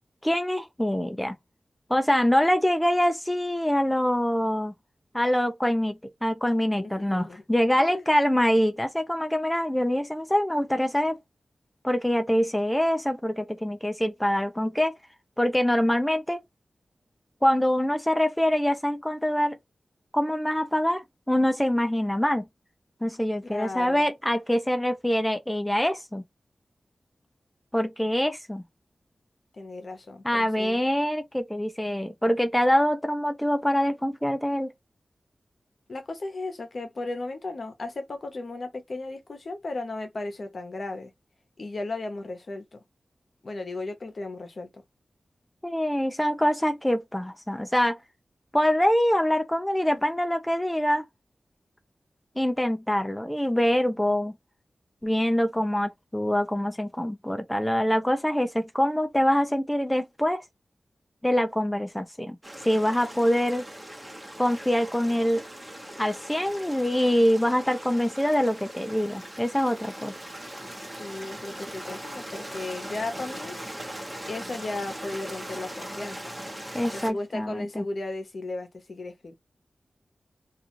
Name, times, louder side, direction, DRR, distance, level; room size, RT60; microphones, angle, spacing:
voice 1, 0.2-1.4 1.9-4.7 5.1-11.2 11.8-15.0 15.4-16.4 17.4-19.6 20.1-22.5 23.0-26.2 27.7-28.6 30.2-34.7 45.6-48.0 48.5-51.1 52.4-54.3 55.0-60.4 61.2-62.4 62.6-63.6 64.4-65.4 66.0-70.1 76.7-77.8, equal, 10° left, 0.5 m, -24 dB
voice 2, 6.8-7.4 7.9-8.0 23.5-24.1 29.5-30.8 35.9-41.1 41.6-42.8 43.4-44.8 71.0-73.6 74.2-76.2 76.9-79.3, left 2 dB, 60° left, 0.8 m, -35 dB
Stream, 62.4-77.1, right 1 dB, 15° right, 1.1 m, -40 dB
2.5 x 2.4 x 3.0 m
wide cardioid pair, 65°, 0 cm